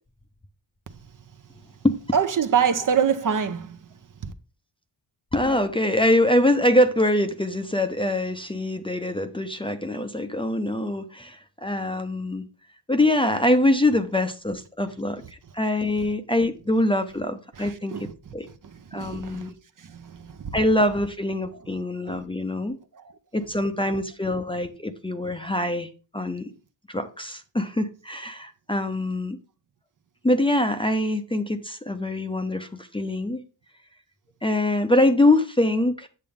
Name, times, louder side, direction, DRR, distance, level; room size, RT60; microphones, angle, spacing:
voice 1, 2.1-3.8 4.2-4.3 17.6-18.1 18.7-19.5 19.9-20.6 22.1-22.2, right 7 dB, 45° right, 0.8 m, -25 dB
voice 2, 5.3-12.5 12.9-15.2 15.5-17.9 18.3-18.5 18.9-19.5 20.5-22.8 23.3-25.9 26.1-26.5 26.9-29.4 30.2-33.4 34.4-36.1, left 1 dB, 10° left, 0.7 m, -24 dB
8.7 x 7.3 x 3.6 m
wide cardioid pair, 115°, 45 cm